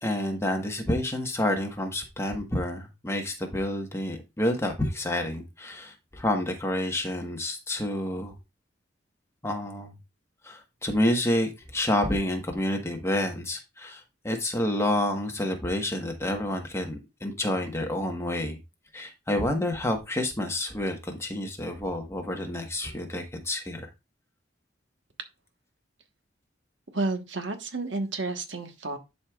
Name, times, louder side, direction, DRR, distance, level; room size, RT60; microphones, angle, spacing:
voice 1, 0.0-8.3 9.4-9.9 10.4-18.6 18.9-23.9, left 1 dB, 15° left, 1.4 m, -29 dB
voice 2, 26.9-29.0, right 3 dB, 90° right, 1.3 m, -31 dB
10.5 x 5.2 x 2.4 m
head